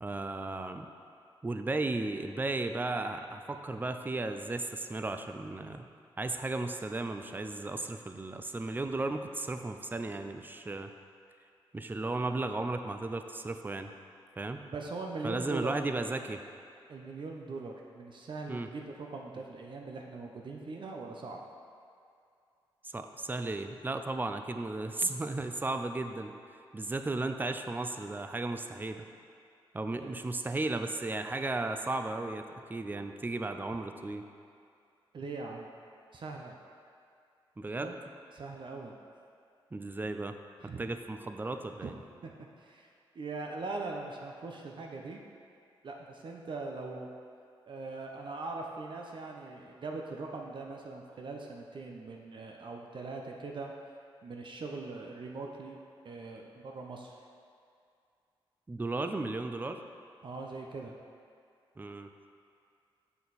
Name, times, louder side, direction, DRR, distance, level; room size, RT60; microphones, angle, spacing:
voice 1, 0.0-0.9 1.4-5.9 6.2-10.9 11.7-13.9 14.4-14.6 15.2-16.4 18.5-18.7 22.8-26.3 26.7-29.1 29.7-32.4 32.7-34.2 37.6-38.0 39.7-40.3 40.8-41.9 58.7-59.8 61.8-62.1, right 2 dB, 20° right, 7 dB, 0.5 m, -35 dB
voice 2, 14.6-15.7 16.9-21.4 30.0-30.1 35.1-35.7 36.1-36.5 37.8-37.9 38.3-38.9 40.6-40.8 41.8-41.9 42.2-42.9 43.1-45.2 45.8-47.1 47.7-53.9 54.2-55.8 56.0-57.1 60.2-60.9, right 3 dB, 60° right, 1 dB, 0.7 m, -41 dB
6.9 x 6.6 x 4.1 m, 2.4 s
cardioid pair, 70°, 9 cm